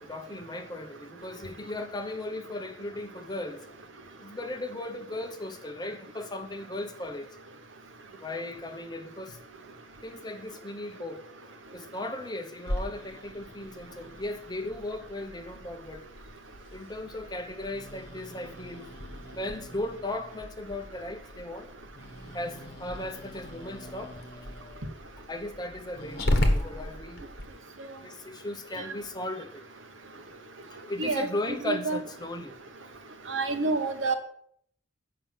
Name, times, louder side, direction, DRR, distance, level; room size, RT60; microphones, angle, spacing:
voice 1, 0.0-3.6 4.2-7.3 8.2-9.4 10.0-11.3 11.7-16.0 16.7-21.9 22.3-24.9 25.2-27.3 28.0-29.6 30.7-32.6, left 2 dB, 20° left, 0.8 m, -37 dB
Growling, 12.7-27.4, left 1 dB, 55° left, 1.2 m, -35 dB
voice 2, 31.7-32.0 33.3-34.1, right 3 dB, 80° right, 1.2 m, -27 dB
7.5 x 5.6 x 7.4 m
head